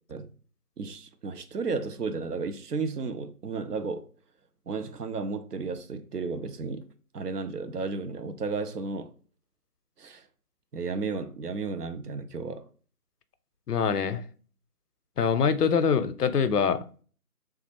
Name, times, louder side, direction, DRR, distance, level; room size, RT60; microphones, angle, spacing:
voice 1, 0.8-4.1 4.7-6.9 7.1-9.1 10.0-10.3 10.7-12.7, right 4 dB, 85° right, 0.6 m, -33 dB
voice 2, 13.7-14.2 15.2-16.9, left 6 dB, 85° left, 0.5 m, -24 dB
3.2 x 2.4 x 2.8 m
figure-of-eight pair, 170°, 46 cm